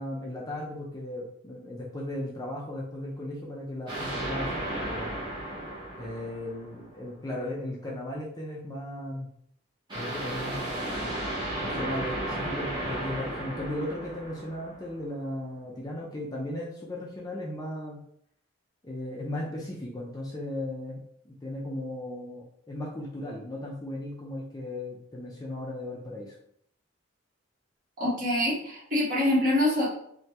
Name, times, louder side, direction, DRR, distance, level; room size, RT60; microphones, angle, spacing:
voice 1, 0.0-5.2 6.0-9.3 9.9-11.2 11.6-18.0 18.8-26.3, left 1 dB, 20° left, -3 dB, 0.4 m, -36 dB
sound 1, 3.9-7.0 9.9-15.1, right 1 dB, 25° right, 0.8 m, -34 dB
voice 2, 28.0-29.9, left 1 dB, 45° right, -6 dB, 1.2 m, -25 dB
3.2 x 2.2 x 2.8 m, 0.69 s
head